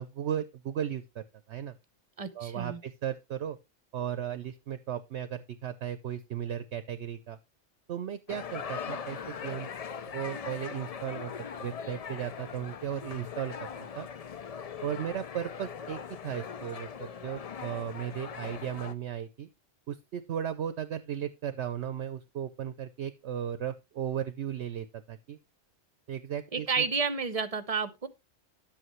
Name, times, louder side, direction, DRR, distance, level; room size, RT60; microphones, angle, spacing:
voice 1, 0.0-1.7 2.3-3.6 3.9-7.4 7.9-9.7 10.1-11.3 11.6-14.1 14.8-19.5 19.9-25.4 26.1-26.8, right 9 dB, 65° right, 0.9 m, -36 dB
voice 2, 2.2-2.8 26.5-28.1, right 5 dB, 35° right, 0.8 m, -31 dB
sound 1, 8.3-18.9, left 7 dB, 60° left, 0.4 m, -40 dB
10.5 x 7.9 x 3.1 m
omnidirectional pair, 1.3 m